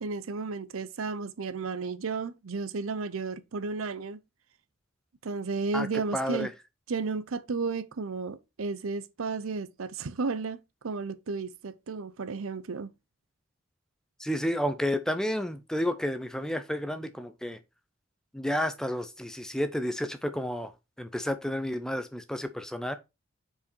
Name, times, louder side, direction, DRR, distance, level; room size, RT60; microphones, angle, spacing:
voice 1, 0.0-4.2 5.2-6.5 6.9-10.6 10.8-12.9, right 4 dB, 80° right, 0.6 m, -33 dB
voice 2, 6.1-6.5 14.2-17.6 18.3-20.7 21.0-23.0, equal, 5° left, 0.5 m, -31 dB
5.6 x 4.8 x 4.4 m
head